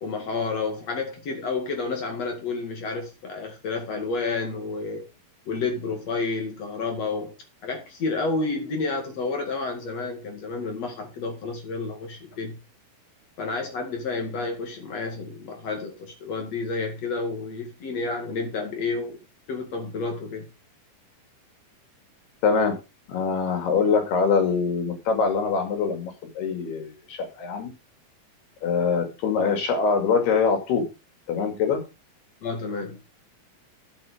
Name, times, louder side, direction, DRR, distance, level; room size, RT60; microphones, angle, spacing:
voice 1, 0.0-5.0 5.5-7.3 7.6-12.6 13.4-19.2 19.5-20.5 32.4-33.0, left 3 dB, 50° left, 2.9 m, -30 dB
voice 2, 22.4-22.8 23.1-27.7 28.6-30.8 31.3-31.8, left 5 dB, 90° left, 4.6 m, -23 dB
10.5 x 7.9 x 5.1 m
omnidirectional pair, 4.4 m